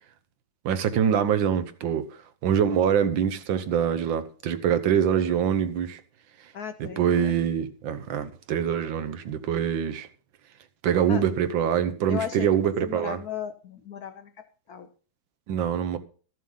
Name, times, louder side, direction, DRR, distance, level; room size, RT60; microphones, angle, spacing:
voice 1, 0.6-2.1 2.4-6.0 6.8-10.1 10.8-13.2 15.5-16.0, right 8 dB, 65° right, 1.5 m, -24 dB
voice 2, 6.5-7.3 11.1-11.2 12.1-12.5 12.8-14.9, left 7 dB, 75° left, 0.9 m, -36 dB
13.0 x 7.6 x 5.5 m
omnidirectional pair, 2.4 m